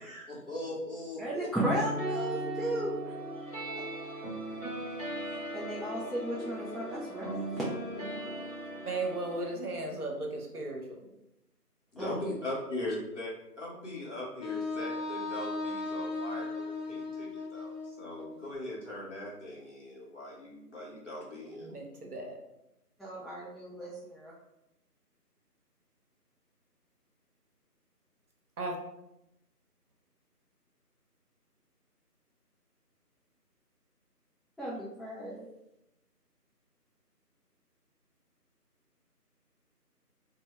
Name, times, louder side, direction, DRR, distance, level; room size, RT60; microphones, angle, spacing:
voice 1, 0.3-1.5 11.9-13.3 13.6-21.8, left 1 dB, 50° left, -5 dB, 0.8 m, -40 dB
voice 2, 1.2-3.1 3.4-3.7 5.3-7.4 7.9-8.4 12.0-12.2 23.0-24.3 34.6-35.5, right 1 dB, ahead, -8 dB, 0.3 m, -36 dB
sound 1, 1.5-9.5, right 1 dB, 25° left, 1.2 m, -38 dB
voice 3, 8.9-10.8 21.6-22.4 28.6-28.8, right 2 dB, 65° right, 1 dB, 0.7 m, -35 dB
Wind instrument woodwind instrument, 14.4-18.4, left 3 dB, 85° left, 0.8 m, -37 dB
2.1 x 2.0 x 2.9 m, 0.87 s
figure-of-eight pair, 170°, 48 cm